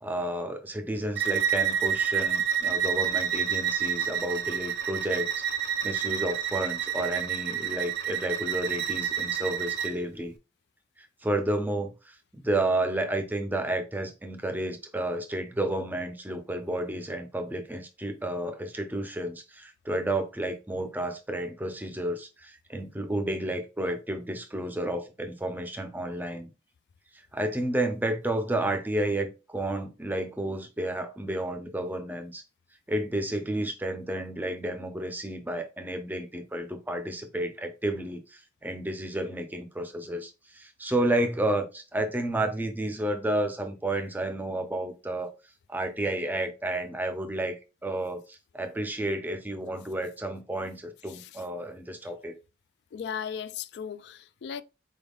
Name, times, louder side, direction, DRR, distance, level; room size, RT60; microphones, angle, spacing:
voice 1, 0.0-5.3 5.8-10.3 11.2-26.5 27.3-32.4 32.9-45.3 45.7-52.3, right 1 dB, 10° right, 0.5 m, -31 dB
Bowed string instrument, 1.2-10.0, right 8 dB, 60° right, 0.4 m, -29 dB
voice 2, 51.1-51.4 52.9-54.6, left 7 dB, 65° left, 0.3 m, -37 dB
4.3 x 3.5 x 2.3 m
head